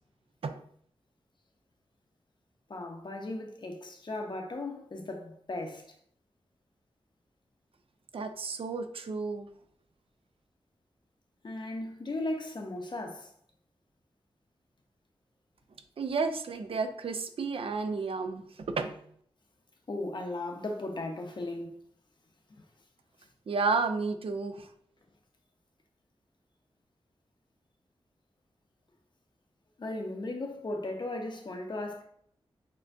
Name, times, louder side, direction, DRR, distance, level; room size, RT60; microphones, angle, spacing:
voice 1, 2.7-5.8 11.4-13.3 19.9-21.8 29.8-32.0, left 2 dB, 50° left, 0.7 m, -36 dB
voice 2, 8.1-9.5 16.0-19.0 23.5-24.7, right 4 dB, 65° right, 0.4 m, -32 dB
6.5 x 2.2 x 2.6 m
wide cardioid pair, 85°, 10 cm